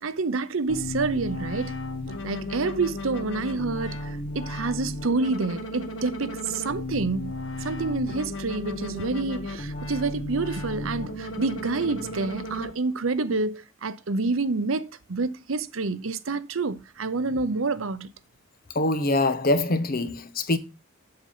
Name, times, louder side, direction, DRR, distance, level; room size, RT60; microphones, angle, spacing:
voice 1, 0.0-1.8 2.2-7.3 7.6-18.1, right 3 dB, 90° right, 0.8 m, -28 dB
sound 1, 0.7-12.7, left 1 dB, 65° left, 1.7 m, -34 dB
voice 2, 18.7-20.6, left 2 dB, 45° left, 1.1 m, -24 dB
7.9 x 6.9 x 5.5 m
head